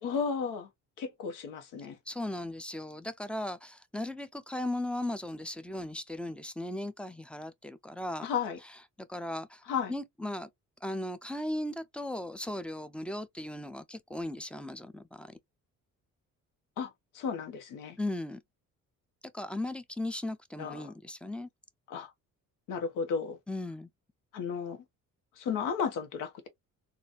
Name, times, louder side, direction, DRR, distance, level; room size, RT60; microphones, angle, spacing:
voice 1, 0.0-0.7 1.0-2.0 8.2-8.6 9.7-9.9 16.8-18.0 20.6-20.9 21.9-22.1 22.7-23.4 24.3-24.8 25.3-26.5, left 6 dB, 90° left, 1.1 m, -34 dB
voice 2, 2.1-8.3 9.0-9.6 9.9-10.5 10.8-15.4 18.0-18.4 19.3-21.5 23.5-23.9, left 1 dB, 5° left, 0.3 m, -37 dB
3.9 x 2.5 x 2.4 m
cardioid pair, 130°, 31 cm